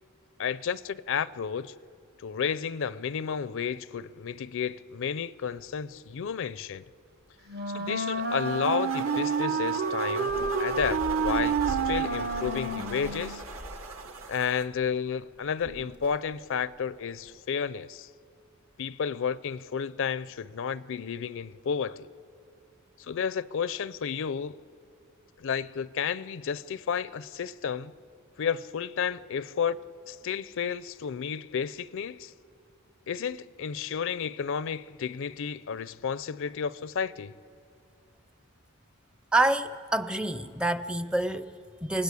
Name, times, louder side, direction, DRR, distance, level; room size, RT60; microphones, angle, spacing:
voice 1, 0.4-1.7 2.2-6.8 7.7-13.4 14.3-18.1 18.8-22.1 23.0-24.6 25.4-27.9 28.4-29.8 30.1-32.3 33.1-37.3, left 7 dB, 60° left, 0.5 m, -32 dB
sound 1, 5.6-6.2 6.5-6.6 6.9-7.4 8.0-8.2 8.5-8.6 9.4-9.5 10.1-14.9 15.2-16.9 17.2-17.3, equal, 85° right, 2.6 m, -43 dB
Wind instrument woodwind instrument, 7.5-13.4, right 5 dB, 50° right, 0.9 m, -29 dB
sound 2, 8.2-14.7, right 3 dB, 70° right, 1.8 m, -40 dB
voice 2, 39.3-42.0, right 2 dB, 5° right, 0.5 m, -27 dB
28.5 x 18.0 x 8.3 m
head